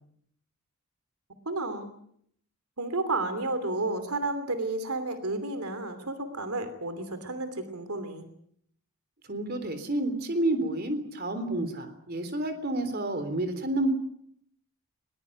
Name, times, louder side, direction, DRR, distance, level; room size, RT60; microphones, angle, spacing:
voice 1, 1.4-1.9 2.8-8.3, right 2 dB, 80° right, 10 dB, 2.9 m, -31 dB
voice 2, 9.3-13.9, right 1 dB, 45° right, 9 dB, 3.6 m, -29 dB
21.0 x 20.5 x 9.2 m, 0.69 s
head